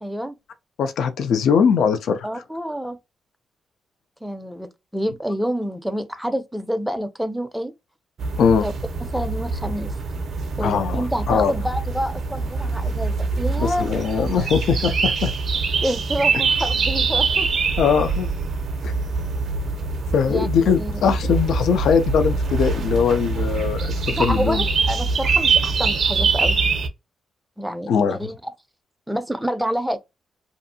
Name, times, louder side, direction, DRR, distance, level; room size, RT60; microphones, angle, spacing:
voice 1, 0.0-0.3 2.2-3.0 4.2-7.7 8.6-8.7 9.0-9.9 10.6-13.9 15.8-17.5 20.2-20.5 20.8-20.9 24.1-26.6 27.6-28.3 29.1-30.0, equal, 5° right, 0.4 m, -28 dB
voice 2, 0.8-2.3 8.4-8.7 10.6-11.5 13.6-15.3 17.8-18.3 18.8-18.9 20.1-24.6 27.9-28.2, left 6 dB, 75° left, 0.3 m, -21 dB
sound 1, 8.2-26.9, right 4 dB, 60° right, 0.5 m, -24 dB
2.5 x 2.3 x 2.6 m
cardioid pair, 90°, 0 cm